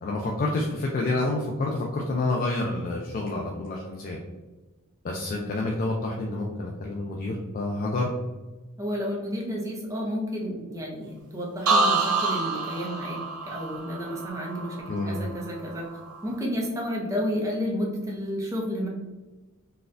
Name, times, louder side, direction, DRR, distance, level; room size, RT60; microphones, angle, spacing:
voice 1, 0.0-4.2 5.0-8.1 14.9-15.2, left 2 dB, 40° left, -1 dB, 0.3 m, -28 dB
voice 2, 8.8-13.2 13.5-15.9 16.2-18.9, equal, 15° right, -2 dB, 0.6 m, -31 dB
Inside piano contact mic twang, 11.7-15.5 15.8-16.3, right 3 dB, 90° right, 0.6 m, -27 dB
4.0 x 2.3 x 2.5 m, 1.2 s
head